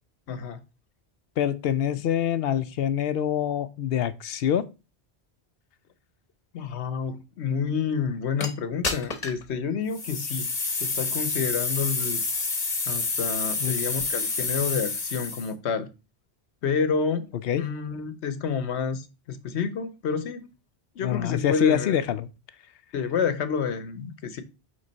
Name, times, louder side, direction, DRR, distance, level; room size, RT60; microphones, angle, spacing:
voice 1, 0.3-0.6 6.5-10.5 10.8-12.2 12.9-15.9 16.6-17.3 17.6-20.5 21.0-22.0 22.9-24.4, left 6 dB, 85° left, 1.1 m, -29 dB
voice 2, 1.4-4.7 13.6-13.9 17.4-17.6 21.0-22.3, left 10 dB, 70° left, 0.8 m, -25 dB
sound 1, 8.4-8.5 8.8-9.4 9.9-15.5, left 3 dB, 40° left, 1.1 m, -28 dB
8.5 x 3.7 x 4.0 m
omnidirectional pair, 1.1 m